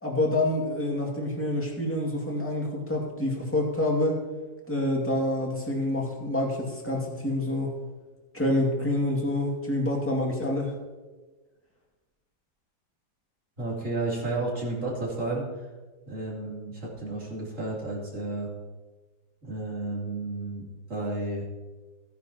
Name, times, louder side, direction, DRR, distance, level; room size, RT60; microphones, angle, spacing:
voice 1, 0.0-4.2 4.7-7.7 8.3-10.7, left 1 dB, 5° left, -2 dB, 2.0 m, -27 dB
voice 2, 13.6-15.7 16.1-18.5 19.4-21.4, right 2 dB, 40° right, -5 dB, 3.3 m, -32 dB
15.5 x 10.0 x 2.9 m, 1.3 s
omnidirectional pair, 2.0 m